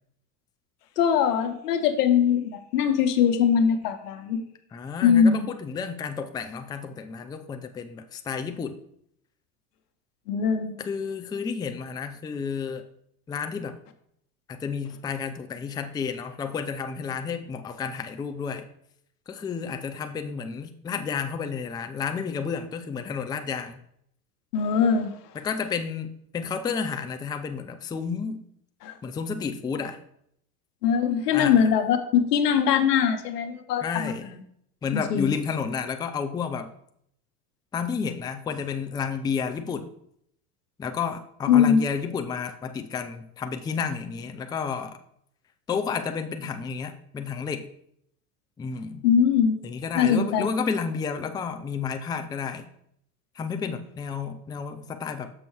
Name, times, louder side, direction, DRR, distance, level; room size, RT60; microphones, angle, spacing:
voice 1, 1.0-4.4 5.0-5.5 10.3-10.7 24.5-25.2 28.8-29.0 30.8-34.1 35.1-35.3 41.5-41.8 49.0-49.6 49.9-50.5, left 7 dB, 85° left, 8 dB, 1.1 m, -21 dB
voice 2, 4.7-8.8 10.8-12.9 13.3-13.8 14.5-18.7 19.3-23.8 25.3-28.4 29.0-30.0 31.3-31.7 33.8-34.3 34.8-36.7 37.7-39.9 40.8-45.0 45.7-47.7 48.6-49.0 49.6-52.7 53.3-55.3, left 6 dB, 10° left, 7 dB, 0.4 m, -31 dB
6.7 x 6.2 x 4.7 m, 0.70 s
supercardioid pair, 105°, 46 cm